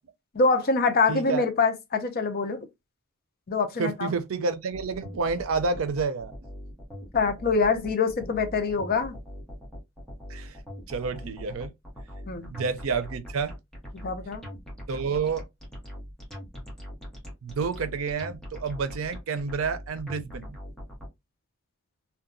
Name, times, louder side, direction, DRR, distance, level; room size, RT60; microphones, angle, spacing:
voice 1, 0.3-2.6 3.5-4.1 7.1-9.2 12.3-12.5 14.0-14.5, left 4 dB, 45° left, 0.5 m, -25 dB
voice 2, 1.1-1.4 3.8-6.3 10.3-10.6 10.9-11.7 12.5-13.5 14.9-15.5 17.4-20.6, right 5 dB, 90° right, 0.5 m, -29 dB
sound 1, 4.7-21.1, equal, 5° left, 0.9 m, -41 dB
2.8 x 2.2 x 2.5 m
head